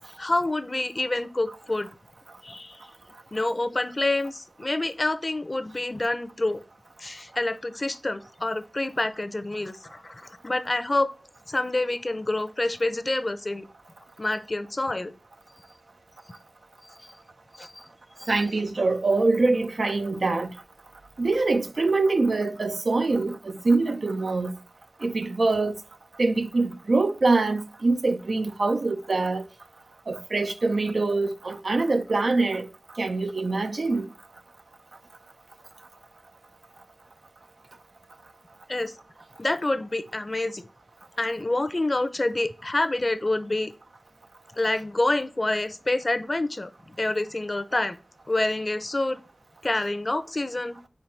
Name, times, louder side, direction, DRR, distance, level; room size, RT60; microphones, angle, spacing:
voice 1, 0.2-1.9 2.4-2.9 3.3-6.6 7.0-11.1 11.5-13.7 14.2-15.1 16.8-16.9 17.5-17.8 18.2-18.3 38.7-38.9 39.4-40.6 41.2-43.7 44.6-48.0 48.3-49.2 49.6-50.8, left 2 dB, 40° left, 0.6 m, -27 dB
voice 2, 18.3-20.5 21.2-24.5 25.0-25.8 26.2-29.4 30.1-32.7 33.0-34.1, right 3 dB, 80° right, 0.6 m, -24 dB
4.6 x 4.6 x 5.6 m
wide cardioid pair, 70°, 0 cm